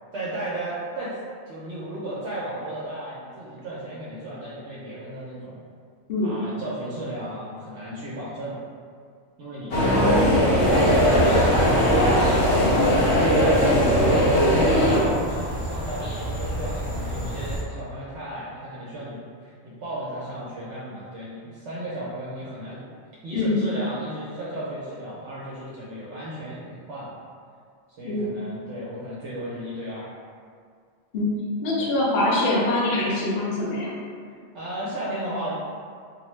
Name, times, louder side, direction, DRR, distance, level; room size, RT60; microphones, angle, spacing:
voice 1, 0.1-1.2 1.5-5.6 6.2-8.6 9.4-22.8 23.2-27.1 28.0-30.1 31.8-31.9 34.5-35.5, right 1 dB, 75° right, -8 dB, 0.8 m, -34 dB
sound 1, 9.7-15.0, equal, 80° left, 1.0 m, -19 dB
voice 2, 9.9-10.4 23.3-23.6 28.0-28.3 31.1-31.3 31.6-33.9, left 2 dB, 60° left, -5 dB, 0.7 m, -24 dB
sound 2, 10.6-17.6, equal, 25° left, 0.8 m, -30 dB
2.6 x 2.0 x 3.0 m, 2.1 s
omnidirectional pair, 1.3 m